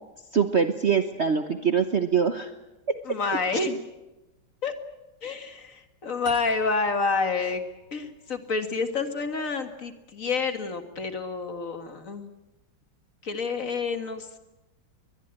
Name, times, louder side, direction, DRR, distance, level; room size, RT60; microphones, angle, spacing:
voice 1, 0.3-2.5 2.9-3.2, right 6 dB, 45° right, 8 dB, 1.1 m, -24 dB
voice 2, 3.0-3.8 4.6-4.8 5.2-7.6 7.9-12.3 13.2-14.4, left 4 dB, 45° left, 8 dB, 2.0 m, -29 dB
sound 1, 6.3-9.4, left 1 dB, 75° left, 2.8 m, -47 dB
22.5 x 20.5 x 8.9 m, 1.0 s
omnidirectional pair, 2.0 m